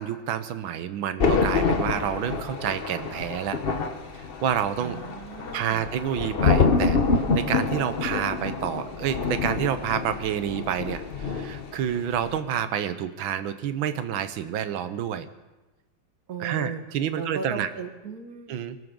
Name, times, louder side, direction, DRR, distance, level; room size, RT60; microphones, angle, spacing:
voice 1, 0.0-3.6 4.2-5.0 5.5-15.3 16.4-17.7 18.5-18.8, right 9 dB, 80° right, 11 dB, 1.6 m, -29 dB
Thunder, 1.2-11.8 12.1-12.4, left 4 dB, 40° left, 0.8 m, -26 dB
voice 2, 4.8-5.8 16.3-16.8 17.1-18.6, right 5 dB, 55° right, 6 dB, 1.7 m, -36 dB
24.0 x 12.5 x 3.8 m, 1.1 s
omnidirectional pair, 2.1 m